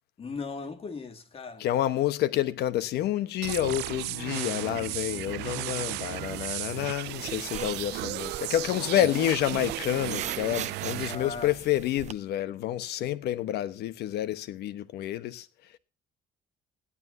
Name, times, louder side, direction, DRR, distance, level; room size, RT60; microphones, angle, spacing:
voice 1, 0.2-1.7 11.0-11.5, left 4 dB, 35° left, 2.2 m, -38 dB
voice 2, 1.6-15.5, left 12 dB, 75° left, 1.1 m, -29 dB
sound 1, 3.4-11.2, right 19 dB, 80° right, 0.5 m, -35 dB
sound 2, 7.0-12.1, right 9 dB, 45° right, 0.7 m, -41 dB
16.5 x 11.0 x 2.7 m
cardioid pair, 110°, 17 cm